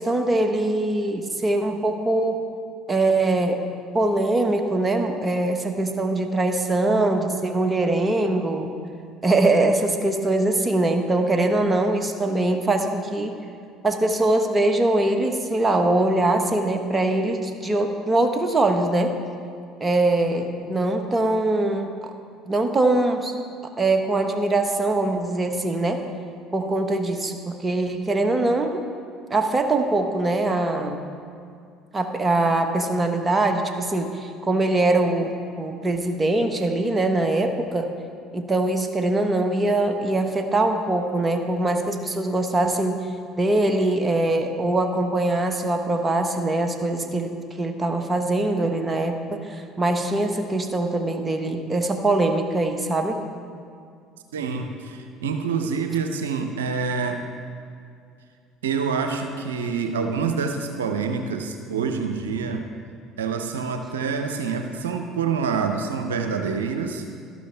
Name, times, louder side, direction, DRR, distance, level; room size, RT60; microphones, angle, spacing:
voice 1, 0.0-2.4 2.9-3.6 3.9-8.7 9.2-13.3 13.8-19.2 19.8-22.1 22.5-23.3 23.8-26.1 26.5-28.9 29.3-31.0 31.9-37.9 38.3-43.1 43.4-53.2, right 2 dB, 20° right, 5 dB, 1.2 m, -22 dB
voice 2, 54.3-57.2 58.6-62.7 63.2-67.1, right 5 dB, 85° right, 5 dB, 0.6 m, -26 dB
12.5 x 11.5 x 3.4 m, 2.3 s
hypercardioid pair, 65°, 0 cm